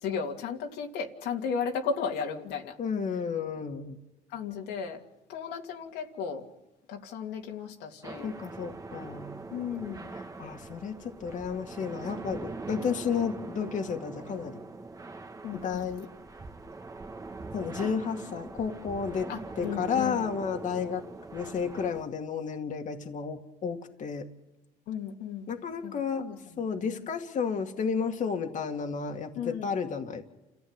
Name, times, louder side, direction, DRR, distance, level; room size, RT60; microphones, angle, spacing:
voice 1, 0.0-2.7 4.3-5.0 5.3-6.4 6.9-8.3 9.5-10.1 15.4-15.9 19.3-20.3 24.9-25.5 25.8-26.4 26.9-27.0 29.4-29.7, left 6 dB, 90° left, 1 dB, 2.7 m, -35 dB
voice 2, 2.8-4.0 8.2-9.3 10.1-14.6 15.5-16.1 17.5-21.1 21.3-24.3 25.5-26.2 26.6-30.2, left 6 dB, 50° left, 4 dB, 2.1 m, -32 dB
sound 1, 8.0-22.0, right 3 dB, 20° right, 1.7 m, -42 dB
29.5 x 15.5 x 8.9 m, 1.0 s
cardioid pair, 110°, 17 cm